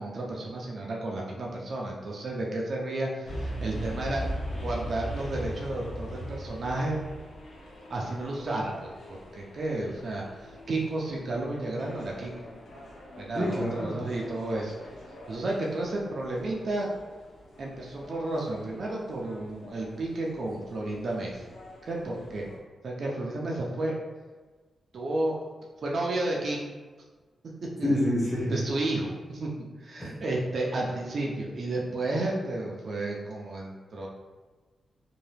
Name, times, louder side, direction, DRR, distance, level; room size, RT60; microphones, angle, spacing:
voice 1, 0.0-4.3 4.6-7.0 7.9-12.3 13.2-14.7 15.3-16.9 17.6-21.4 21.9-22.5 22.8-24.0 24.9-25.4 25.8-26.6 27.8-28.0 28.5-29.5 29.8-34.1, right 2 dB, 45° right, -2 dB, 0.4 m, -32 dB
sound 1, 3.3-22.6, equal, 65° left, 0.6 m, -41 dB
voice 2, 13.3-14.0 27.8-28.5 30.0-30.1, left 1 dB, 10° left, -5 dB, 0.7 m, -27 dB
2.7 x 2.2 x 3.2 m, 1.3 s
wide cardioid pair, 170°, 0 cm